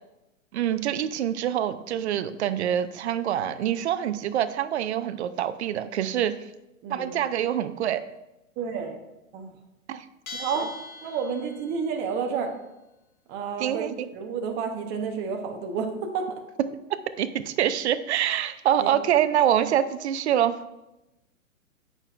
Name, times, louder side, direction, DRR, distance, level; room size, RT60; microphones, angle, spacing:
voice 1, 0.5-6.3 6.9-8.0 9.9-10.0 10.3-10.5 13.6-14.1 17.2-20.5, right 10 dB, 55° right, 13 dB, 0.6 m, -25 dB
voice 2, 6.8-7.1 8.6-9.0 9.3-9.5 10.4-10.7 11.0-12.5 13.3-16.4 18.8-18.9, right 6 dB, 25° right, 4 dB, 0.9 m, -30 dB
Bell, 10.3-11.8, left 2 dB, 85° left, 1.2 m, -40 dB
8.8 x 6.1 x 2.5 m, 0.94 s
hypercardioid pair, 125°, 41 cm